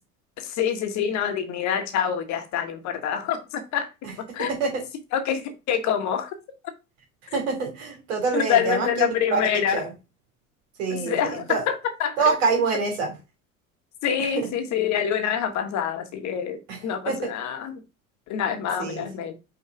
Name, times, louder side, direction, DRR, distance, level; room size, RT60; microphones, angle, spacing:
voice 1, 0.4-3.9 4.3-4.5 5.1-6.3 8.3-9.8 10.9-12.3 14.0-17.8 18.3-19.3, left 8 dB, 40° left, 1.3 m, -26 dB
voice 2, 4.4-4.8 7.3-9.4 9.7-9.9 10.8-11.2 11.5-11.6 12.2-13.1 14.2-14.5 16.7-16.8 17.1-17.3 18.8-19.0, right 4 dB, 60° right, 3.0 m, -25 dB
5.6 x 3.7 x 4.9 m
figure-of-eight pair, 70°, 41 cm